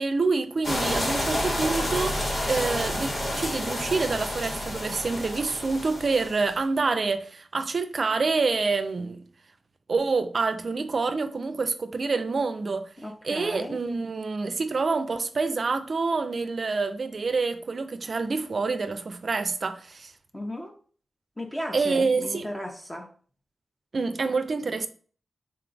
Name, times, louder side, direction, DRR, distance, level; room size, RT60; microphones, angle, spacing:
voice 1, 0.0-9.2 9.9-12.9 13.2-20.1 21.7-22.5 23.9-24.9, right 4 dB, 50° right, 0.4 m, -27 dB
sound 1, 0.6-6.5, left 1 dB, 55° left, 1.2 m, -29 dB
voice 2, 13.0-13.8 20.3-20.8 21.4-23.1, left 1 dB, 15° left, 0.5 m, -35 dB
3.8 x 2.3 x 3.8 m
wide cardioid pair, 130°, 0 cm